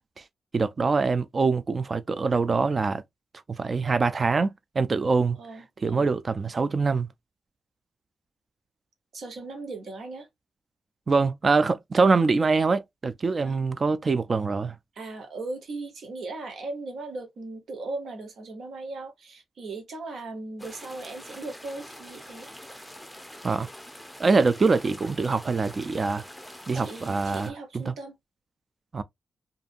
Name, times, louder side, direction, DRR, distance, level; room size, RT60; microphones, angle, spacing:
voice 1, 0.5-3.0 3.6-5.4 5.8-7.1 11.1-14.7 23.4-23.7 24.2-26.2 26.7-27.8 28.9-29.0, right 4 dB, 45° right, 0.4 m, -24 dB
voice 2, 5.3-6.1 9.1-10.3 13.4-13.6 14.9-22.5 26.7-28.2, right 3 dB, 80° right, 1.0 m, -38 dB
sound 1, 20.6-27.5, equal, ahead, 0.7 m, -45 dB
2.6 x 2.6 x 2.4 m
cardioid pair, 70°, 0 cm